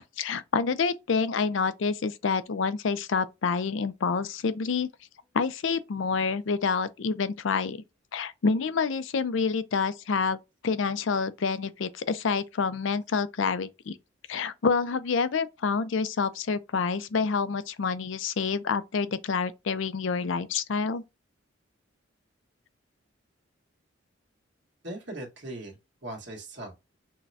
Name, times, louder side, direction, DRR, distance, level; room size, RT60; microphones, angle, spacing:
voice 1, 0.2-4.9 5.3-7.8 8.1-10.4 10.6-14.0 14.3-21.0, left 5 dB, 65° left, 0.4 m, -28 dB
voice 2, 24.8-26.8, right 1 dB, 55° right, 1.6 m, -39 dB
6.1 x 2.2 x 2.7 m
head